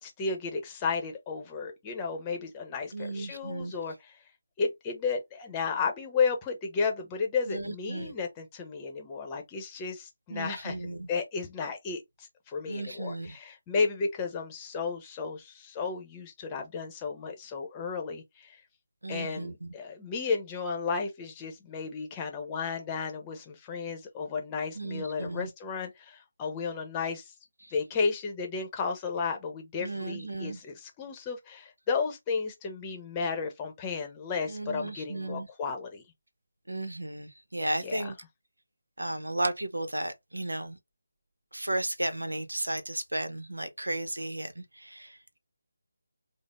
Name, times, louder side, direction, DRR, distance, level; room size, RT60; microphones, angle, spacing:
voice 1, 0.0-4.2 4.6-18.6 19.1-27.3 27.7-36.0 37.8-38.1, left 5 dB, 20° left, 0.8 m, -33 dB
voice 2, 2.9-3.7 7.5-8.1 10.3-11.1 12.7-13.4 19.0-19.7 24.8-25.5 29.8-30.6 34.5-35.5 36.7-38.2 39.0-40.8 41.5-45.1, right 1 dB, 85° right, 0.8 m, -34 dB
4.9 x 2.1 x 2.5 m
figure-of-eight pair, 155°, 0 cm